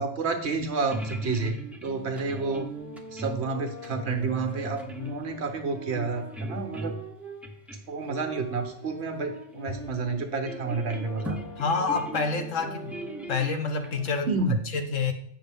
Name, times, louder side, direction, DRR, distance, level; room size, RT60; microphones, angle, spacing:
voice 1, 0.0-2.7 3.1-4.8 5.1-7.0 7.9-11.4 14.2-14.6, right 4 dB, 60° right, 5 dB, 1.1 m, -30 dB
sound 1, 0.7-7.1 7.4-7.8 8.8-8.9 9.2-9.4 9.7-9.9 10.3-14.1, right 1 dB, ahead, 0.5 m, -38 dB
sound 2, 2.0-7.4 8.1-13.4, right 2 dB, 30° left, 2.3 m, -43 dB
voice 2, 11.6-13.0 13.3-14.3 14.7-15.1, left 4 dB, 75° left, 6 dB, 1.2 m, -27 dB
8.1 x 5.9 x 3.5 m, 0.69 s
omnidirectional pair, 1.3 m